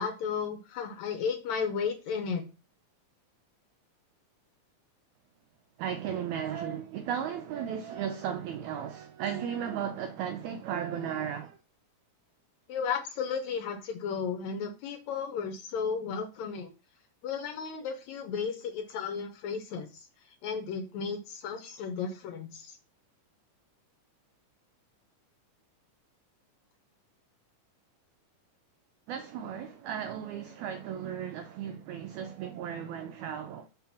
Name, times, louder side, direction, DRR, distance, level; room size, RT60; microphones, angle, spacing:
voice 1, 0.0-2.4 12.7-16.7 17.2-20.1 20.4-22.8, left 6 dB, 75° left, 1.8 m, -34 dB
voice 2, 5.8-11.6 29.1-33.7, right 8 dB, 85° right, 1.6 m, -35 dB
5.7 x 3.3 x 5.8 m
omnidirectional pair, 3.8 m